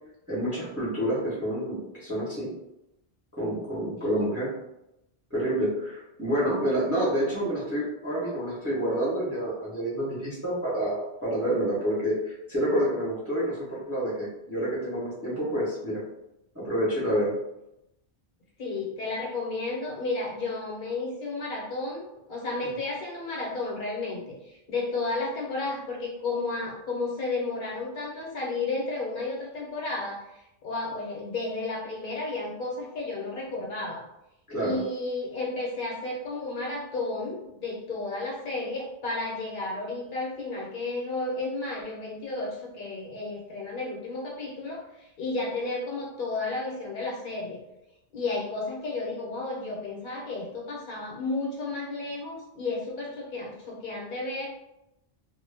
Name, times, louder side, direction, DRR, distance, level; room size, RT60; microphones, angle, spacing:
voice 1, 0.3-2.5 3.3-4.5 5.3-16.0 16.5-17.3 34.5-34.8, equal, 15° right, -8 dB, 0.8 m, -28 dB
voice 2, 18.6-34.0 34.6-47.6 48.1-54.5, left 3 dB, 55° left, -2 dB, 0.9 m, -32 dB
2.1 x 2.1 x 3.2 m, 0.87 s
omnidirectional pair, 1.1 m